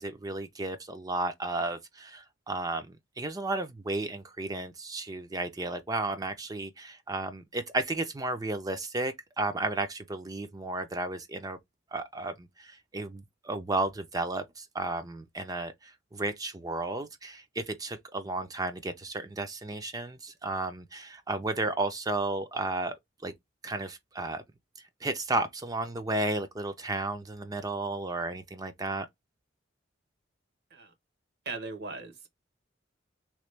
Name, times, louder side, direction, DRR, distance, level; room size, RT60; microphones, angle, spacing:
voice 1, 0.0-11.6 11.9-22.9 23.2-23.3 23.6-24.4 25.0-29.1, right 2 dB, 20° right, 0.4 m, -33 dB
voice 2, 31.4-32.3, right 3 dB, 60° right, 1.0 m, -39 dB
3.0 x 2.3 x 3.2 m
head